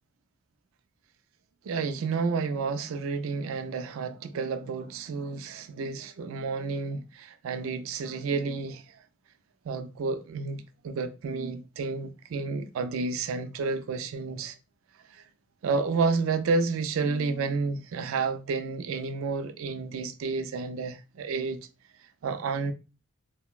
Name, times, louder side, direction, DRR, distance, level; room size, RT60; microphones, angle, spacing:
voice 1, 1.7-8.8 9.7-14.5 15.6-21.6 22.2-22.7, right 4 dB, 80° right, 0.3 m, -30 dB
3.8 x 2.1 x 2.3 m
head